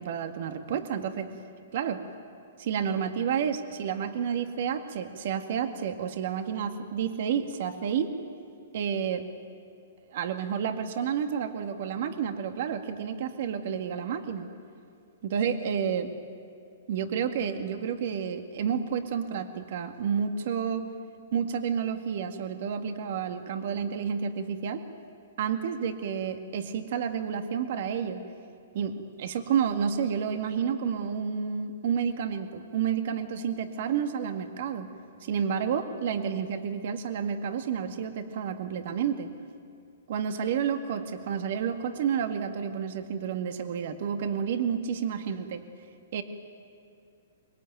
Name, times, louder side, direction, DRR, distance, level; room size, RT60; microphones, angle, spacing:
voice 1, 0.0-1.4 1.7-2.0 2.6-8.1 8.7-9.3 10.1-14.5 15.2-16.1 16.9-20.9 21.3-24.8 25.4-28.2 28.7-34.9 35.2-39.3 40.1-45.6 46.1-46.2, right 7 dB, 55° right, 6 dB, 2.0 m, -30 dB
24.0 x 22.0 x 9.3 m, 2.4 s
hypercardioid pair, 135°, 0 cm